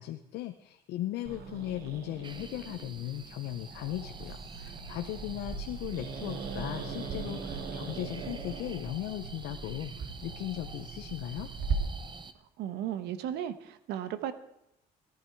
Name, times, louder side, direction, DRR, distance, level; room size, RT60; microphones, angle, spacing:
voice 1, 0.0-11.5, left 14 dB, 85° left, 7 dB, 0.8 m, -37 dB
Growling, 1.2-11.7, right 5 dB, 70° right, 2.5 m, -40 dB
sound 1, 2.2-12.3, right 5 dB, 25° right, 0.9 m, -47 dB
voice 2, 12.6-14.3, right 10 dB, 85° right, 13 dB, 1.2 m, -35 dB
17.5 x 11.0 x 4.6 m, 0.83 s
cardioid pair, 110°, 17 cm